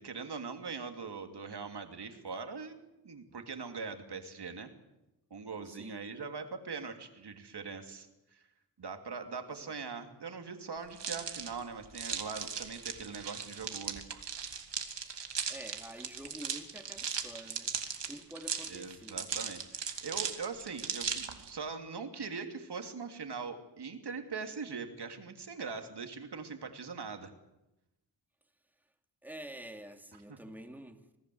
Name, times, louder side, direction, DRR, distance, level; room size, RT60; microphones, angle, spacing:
voice 1, 0.0-2.8 3.0-4.7 5.3-8.4 8.8-14.2 18.7-27.3 30.3-30.4, right 5 dB, 70° right, 3.0 m, -41 dB
voice 2, 5.7-6.1 9.7-9.8 15.1-15.2 15.5-17.8 18.0-19.3 29.2-31.1, right 1 dB, 5° right, 2.7 m, -48 dB
sound 1, 11.0-21.5, right 6 dB, 90° right, 2.6 m, -38 dB
27.0 x 18.5 x 7.9 m
wide cardioid pair, 80°, 41 cm